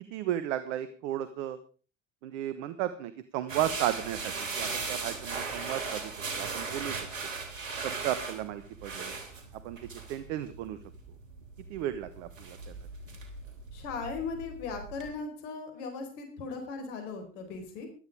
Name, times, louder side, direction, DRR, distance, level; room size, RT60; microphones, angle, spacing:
voice 1, 0.1-1.6 2.2-7.3 7.8-9.1 9.6-10.8 11.7-12.7, right 12 dB, 70° right, 12 dB, 1.5 m, -34 dB
sound 1, 3.5-15.1, right 4 dB, 90° right, 3.4 m, -38 dB
voice 2, 13.7-17.9, left 4 dB, 70° left, 5 dB, 4.6 m, -38 dB
16.0 x 12.0 x 4.9 m, 0.38 s
hypercardioid pair, 75°, 38 cm